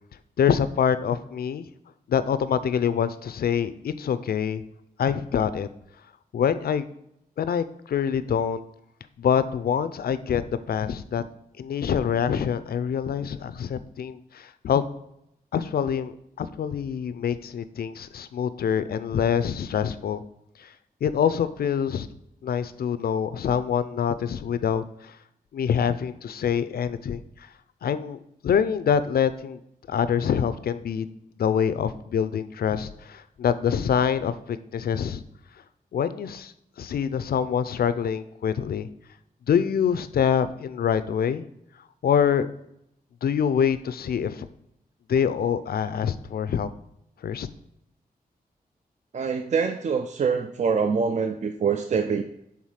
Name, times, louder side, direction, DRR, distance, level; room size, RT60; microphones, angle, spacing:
voice 1, 0.4-1.7 2.1-4.6 5.0-5.7 6.3-6.9 7.4-8.6 9.2-10.4 10.7-11.2 11.6-14.8 15.5-16.1 16.4-20.2 20.6-20.7 21.0-22.1 22.4-25.1 25.5-27.5 27.8-29.6 29.9-31.1 31.4-35.2 35.9-36.5 36.8-38.9 39.5-41.4 42.0-42.5 43.2-44.5 45.1-46.7 47.2-47.5, left 8 dB, 75° left, 12 dB, 0.4 m, -25 dB
voice 2, 49.1-52.2, right 5 dB, 50° right, 6 dB, 0.4 m, -25 dB
5.7 x 3.6 x 4.7 m, 0.79 s
wide cardioid pair, 90°, 16 cm